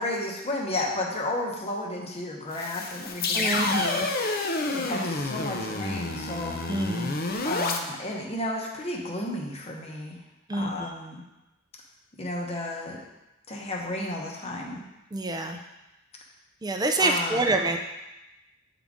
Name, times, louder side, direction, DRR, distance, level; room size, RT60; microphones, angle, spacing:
voice 1, 0.0-6.6 7.4-10.2 10.5-11.2 12.2-13.0 13.5-14.8 17.0-17.6, left 1 dB, 30° left, 0 dB, 0.9 m, -33 dB
sound 1, 2.5-7.8, left 3 dB, 45° left, 0.6 m, -29 dB
voice 2, 3.3-4.1 6.7-7.1 10.5-10.9 15.1-15.6 16.6-17.8, right 2 dB, 20° right, 4 dB, 0.5 m, -26 dB
8.4 x 3.8 x 3.6 m, 0.97 s
head